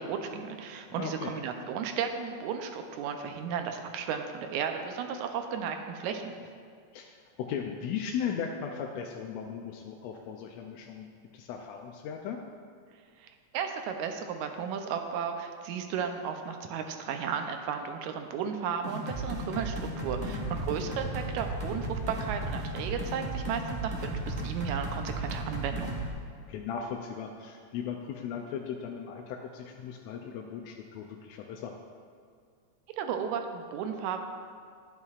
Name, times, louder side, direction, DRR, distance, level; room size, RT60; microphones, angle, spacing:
voice 1, 0.0-6.4 13.2-26.0 33.0-34.2, right 7 dB, 85° right, 5 dB, 2.0 m, -34 dB
voice 2, 0.9-1.3 6.9-11.1 11.3-12.4 20.2-20.6 26.5-31.8, left 7 dB, 80° left, 2 dB, 1.7 m, -37 dB
sound 1, 18.8-26.1, right 1 dB, 50° right, 0.5 m, -35 dB
11.5 x 9.7 x 2.4 m, 2.1 s
omnidirectional pair, 3.3 m